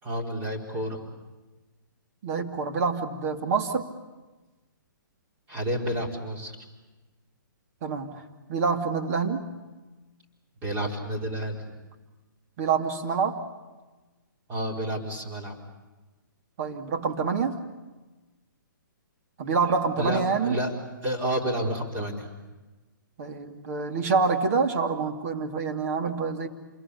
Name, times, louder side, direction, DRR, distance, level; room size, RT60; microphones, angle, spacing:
voice 1, 0.0-1.0 5.5-6.6 10.6-11.7 14.5-15.6 19.6-19.7 20.0-22.3, equal, 20° right, 1 dB, 4.3 m, -30 dB
voice 2, 2.2-3.9 7.8-8.2 8.5-9.4 12.6-13.4 16.6-17.6 19.4-20.6 23.2-26.5, right 5 dB, 45° right, 5 dB, 2.6 m, -26 dB
28.0 x 21.5 x 8.5 m, 1.2 s
hypercardioid pair, 145°, 11 cm